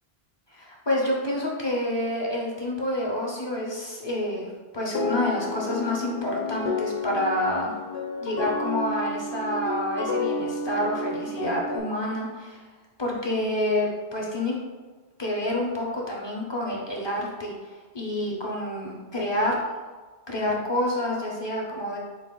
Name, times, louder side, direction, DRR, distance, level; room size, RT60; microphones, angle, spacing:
voice 1, 0.5-7.8 8.2-12.6 13.0-14.5 15.2-17.5 17.9-19.6 20.3-22.0, left 1 dB, 30° left, -3 dB, 0.6 m, -28 dB
sound 1, 4.9-11.8, left 3 dB, 75° left, 0.8 m, -31 dB
4.1 x 2.5 x 3.7 m, 1.3 s
omnidirectional pair, 1.0 m